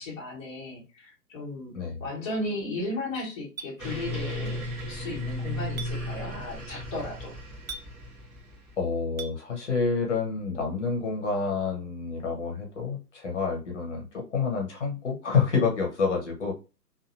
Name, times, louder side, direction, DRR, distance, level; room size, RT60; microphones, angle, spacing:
voice 1, 0.0-1.7 2.0-7.3, left 2 dB, 20° left, -6 dB, 0.9 m, -35 dB
Chink clink, 3.6-3.7 5.8-5.9 7.7-7.9 9.2-9.3, right 5 dB, 55° right, 0.5 m, -37 dB
sound 1, 3.8-8.7, left 1 dB, 10° right, 0.7 m, -35 dB
voice 2, 8.8-16.5, left 5 dB, 45° left, 0 dB, 1.0 m, -28 dB
2.7 x 2.6 x 2.4 m, 0.30 s
figure-of-eight pair, 140°, 50 cm